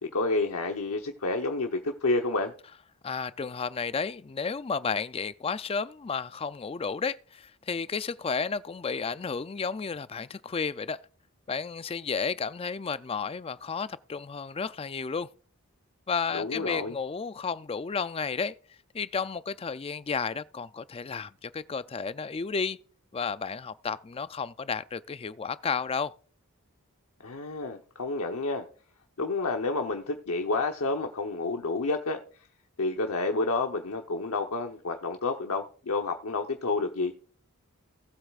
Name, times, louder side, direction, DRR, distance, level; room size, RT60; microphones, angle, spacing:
voice 1, 0.0-2.5 16.3-16.9 27.2-28.7 29.2-32.2 32.8-37.2, left 3 dB, 80° left, 1.0 m, -29 dB
voice 2, 3.0-11.0 11.5-15.3 16.1-18.5 18.9-22.8 23.1-26.1, left 5 dB, 25° left, 0.4 m, -32 dB
18.5 x 8.0 x 2.4 m
head